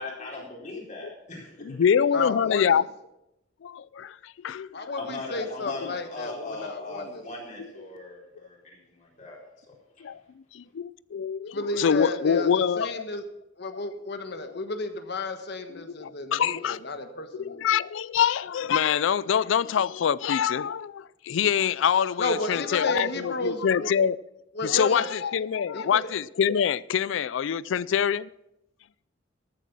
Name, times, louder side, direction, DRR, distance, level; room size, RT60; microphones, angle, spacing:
voice 1, 0.0-1.8 5.0-9.6 10.0-10.1, left 3 dB, 40° left, 4.2 m, -39 dB
voice 2, 1.6-2.8 3.6-4.7 7.6-7.7 10.0-10.2 10.5-13.0 15.8-16.8 17.3-24.2 24.6-28.3, left 8 dB, 75° left, 0.4 m, -25 dB
voice 3, 2.1-2.8 4.7-7.2 11.5-12.5 12.8-13.2 13.6-17.7 22.2-23.9 24.5-25.1 25.7-26.0, left 2 dB, 60° left, 1.3 m, -32 dB
13.5 x 9.2 x 6.0 m
head